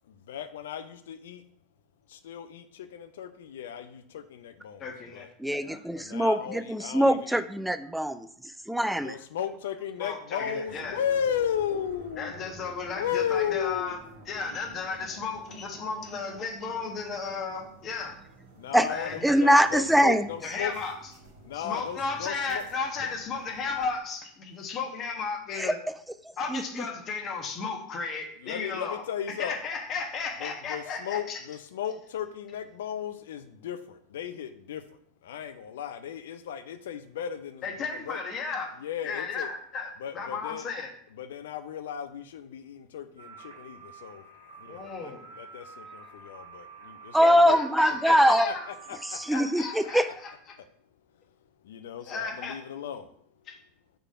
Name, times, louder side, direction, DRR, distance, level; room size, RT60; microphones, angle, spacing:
voice 1, 0.3-1.4 2.1-5.3 5.9-7.4 9.0-12.3 13.0-14.0 18.6-20.7 21.4-22.6 28.4-29.5 30.4-34.8 35.2-38.2 38.8-39.5 40.0-40.7 41.2-44.2 44.6-47.6 48.1-49.2 51.6-53.1, left 9 dB, 65° left, 10 dB, 0.5 m, -35 dB
voice 2, 4.8-5.3 5.6-5.8 10.0-11.0 12.2-14.0 14.3-18.2 18.9-19.4 20.4-21.0 21.5-25.8 26.4-29.0 29.4-31.4 37.6-38.7 39.0-40.9 44.7-45.2 47.2-48.7 49.3-50.6 52.1-52.6 53.5-53.6, left 4 dB, 35° left, 3 dB, 1.1 m, -34 dB
voice 3, 5.4-8.3 8.7-9.2 18.7-18.9 19.2-20.3 25.6-25.7 26.5-26.6 47.1-48.5 49.1-50.1, equal, 5° right, 11 dB, 0.4 m, -22 dB
sound 1, 10.6-23.9, right 2 dB, 70° right, 1.5 m, -50 dB
sound 2, 43.2-50.0, right 5 dB, 90° right, 1.7 m, -48 dB
4.9 x 3.8 x 5.5 m, 0.65 s
figure-of-eight pair, 80°, 0 cm